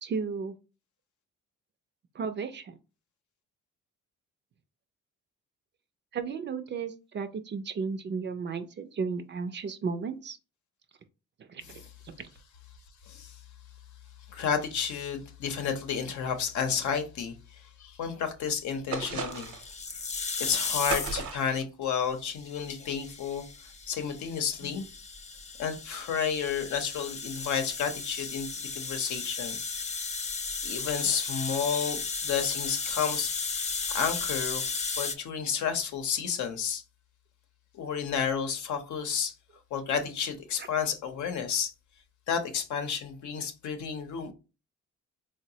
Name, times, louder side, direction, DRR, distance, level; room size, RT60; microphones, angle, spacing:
voice 1, 0.0-0.5 2.1-2.7 6.1-10.4 11.5-12.3 24.6-24.7 40.6-40.7, right 5 dB, 40° right, 0.4 m, -34 dB
voice 2, 14.3-19.5 20.4-23.4 23.9-24.8 25.6-29.5 30.6-33.3 33.9-34.6 35.0-36.8 37.7-39.3 39.7-41.7 42.3-44.3, left 7 dB, 70° left, 0.7 m, -31 dB
sound 1, 18.9-19.7 20.9-21.6, right 5 dB, 70° right, 0.7 m, -34 dB
sound 2, 19.3-21.3 22.4-35.2, left 4 dB, 25° left, 0.4 m, -35 dB
3.9 x 2.0 x 2.7 m
cardioid pair, 90°, 30 cm